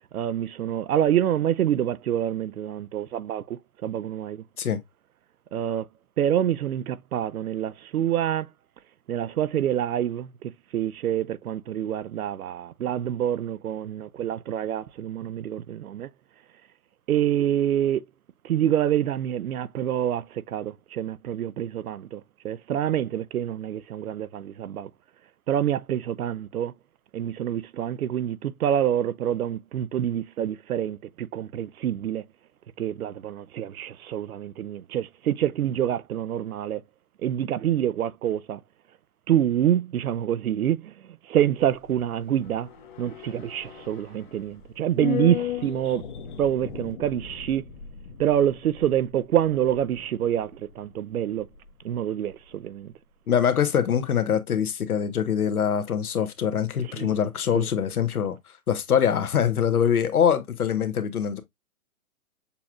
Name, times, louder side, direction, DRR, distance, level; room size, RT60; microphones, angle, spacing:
voice 1, 0.1-4.4 5.5-5.9 6.2-8.5 9.1-16.1 17.1-18.0 18.4-24.9 25.5-26.7 27.1-32.3 32.8-36.8 37.2-38.6 39.3-42.7 43.0-46.0 46.4-47.7 48.2-51.5 51.8-52.9 56.9-57.1 57.5-57.7, right 10 dB, 75° right, 0.7 m, -26 dB
sound 1, 41.6-52.0 52.3-52.4, left 11 dB, 35° left, 0.9 m, -38 dB
voice 2, 53.3-58.4 58.7-61.4, left 8 dB, 85° left, 1.2 m, -24 dB
6.9 x 3.0 x 2.4 m
hypercardioid pair, 155°, 43 cm